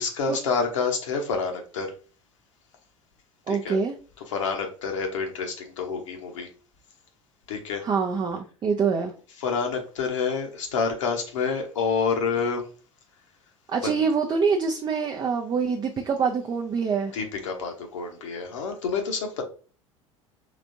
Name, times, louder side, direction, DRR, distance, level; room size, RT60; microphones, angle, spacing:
voice 1, 0.0-1.9 3.5-3.8 4.3-6.5 7.5-7.8 9.4-12.7 13.8-14.0 17.1-19.4, left 5 dB, 65° left, 3 dB, 1.0 m, -28 dB
voice 2, 3.5-3.9 7.8-9.1 13.7-17.1, right 5 dB, 25° right, 2 dB, 0.5 m, -25 dB
5.0 x 3.3 x 2.6 m, 0.39 s
figure-of-eight pair, 70°, 17 cm